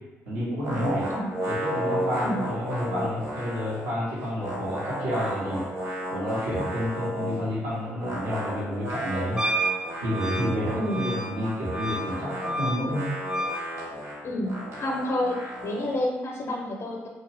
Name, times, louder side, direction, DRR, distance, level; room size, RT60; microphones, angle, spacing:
voice 1, 0.3-1.1 1.5-5.7 6.1-9.4 10.0-13.1, equal, 80° right, -8 dB, 0.9 m, -30 dB
sound 1, 0.6-3.9 4.2-7.5 8.0-16.0, equal, 55° right, 1.1 m, -33 dB
Wind instrument woodwind instrument, 9.4-13.6, right 1 dB, 10° right, 0.4 m, -31 dB
voice 2, 10.7-11.1 14.2-15.4 15.6-17.1, left 1 dB, 40° left, 0 dB, 0.6 m, -29 dB
2.4 x 2.3 x 3.3 m, 1.1 s
hypercardioid pair, 45°, 6 cm